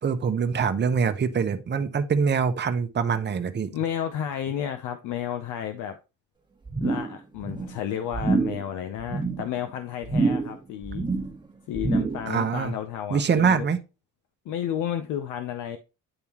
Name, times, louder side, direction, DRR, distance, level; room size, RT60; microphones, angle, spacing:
voice 1, 0.0-3.7 12.3-12.7 13.1-13.8, right 6 dB, 35° right, 0.8 m, -24 dB
voice 2, 3.7-6.0 6.8-11.0 11.7-13.7 14.5-15.8, left 10 dB, 85° left, 0.7 m, -32 dB
sound 1, 6.7-7.2 7.4-7.8 8.1-8.6 9.0-9.4 10.0-10.6 10.8-11.4 11.7-12.3 12.6-12.7, right 3 dB, 15° right, 1.3 m, -26 dB
9.8 x 3.5 x 2.9 m
cardioid pair, 90°, 30 cm